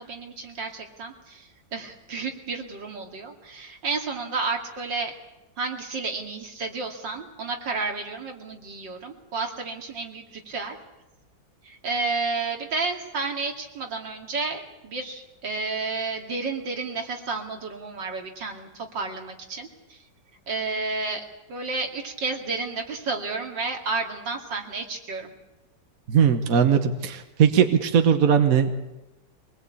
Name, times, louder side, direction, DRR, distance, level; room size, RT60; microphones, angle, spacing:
voice 1, 0.0-5.1 5.6-10.8 11.6-20.0 20.5-21.2 21.5-25.3, right 3 dB, 75° right, 3 dB, 3.0 m, -31 dB
voice 2, 26.1-28.9, right 7 dB, 50° right, 7 dB, 1.5 m, -20 dB
23.5 x 19.5 x 8.5 m, 1.0 s
omnidirectional pair, 2.0 m